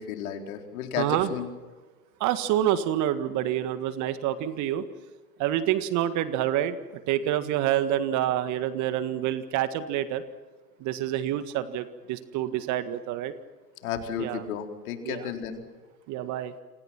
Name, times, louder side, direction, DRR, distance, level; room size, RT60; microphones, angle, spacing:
voice 1, 0.0-1.5 13.8-15.6, left 8 dB, 55° left, 4 dB, 4.3 m, -33 dB
voice 2, 1.0-1.3 2.2-4.8 5.4-6.8 7.1-10.2 10.8-13.3 14.2-14.4 15.0-15.3 16.1-16.5, right 11 dB, 35° right, 12 dB, 1.8 m, -27 dB
28.5 x 27.0 x 6.0 m, 1.3 s
hypercardioid pair, 110°, 49 cm